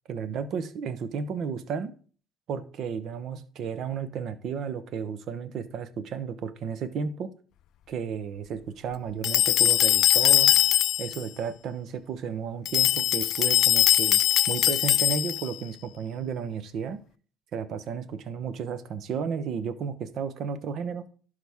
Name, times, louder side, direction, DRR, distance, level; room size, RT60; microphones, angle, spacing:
voice 1, 0.1-1.9 2.5-7.3 7.9-10.6 11.0-14.2 14.5-17.0 17.5-21.1, right 6 dB, 60° right, 13 dB, 0.8 m, -33 dB
sound 1, 9.2-11.2 12.7-15.5, left 13 dB, 65° left, 0.3 m, -21 dB
11.5 x 5.0 x 3.6 m, 0.42 s
supercardioid pair, 95°, 0 cm